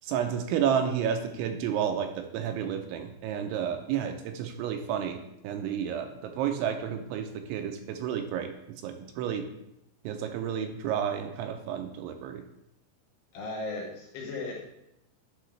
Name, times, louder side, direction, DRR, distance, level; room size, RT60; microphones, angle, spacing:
voice 1, 0.0-5.2 5.4-8.5 8.8-9.5 10.0-12.4, right 8 dB, 85° right, 5 dB, 2.9 m, -31 dB
voice 2, 13.3-14.7, left 3 dB, 70° left, -1 dB, 2.8 m, -36 dB
10.5 x 5.6 x 3.2 m, 0.82 s
omnidirectional pair, 5.6 m